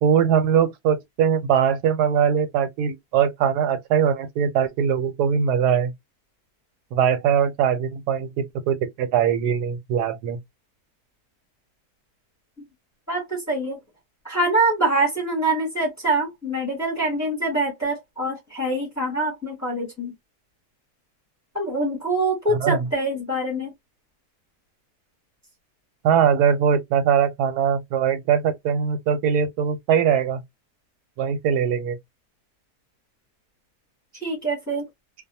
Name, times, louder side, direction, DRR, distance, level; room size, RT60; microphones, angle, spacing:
voice 1, 0.0-5.9 6.9-10.4 22.5-22.9 26.0-30.4 31.2-32.0, right 8 dB, 90° right, 1.1 m, -21 dB
voice 2, 13.1-13.8 14.2-20.1 21.5-23.7 34.2-34.8, right 2 dB, 15° left, 0.9 m, -24 dB
2.6 x 2.2 x 2.6 m
omnidirectional pair, 1.7 m